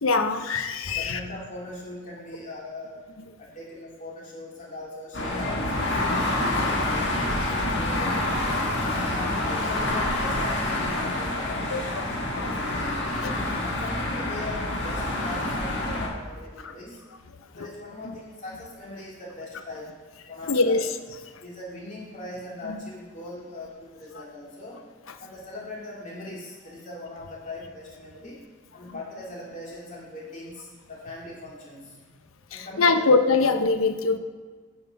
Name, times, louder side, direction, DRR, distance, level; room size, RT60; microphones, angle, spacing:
voice 1, 0.0-1.2 10.9-11.0 11.7-11.8 12.4-12.5 13.2-13.3 16.6-16.7 20.5-20.9 32.5-34.2, left 3 dB, 80° left, 8 dB, 0.7 m, -23 dB
voice 2, 0.9-3.0 3.4-7.1 7.5-8.3 8.9-12.1 12.3-13.2 13.6-17.0 17.5-19.9 20.3-20.8 21.4-24.8 25.2-28.4 28.7-32.0 32.5-33.1, left 2 dB, 35° left, -5 dB, 2.7 m, -40 dB
sound 1, 5.1-16.1, left 1 dB, 55° left, 1.7 m, -27 dB
9.4 x 5.9 x 5.2 m, 1.5 s
head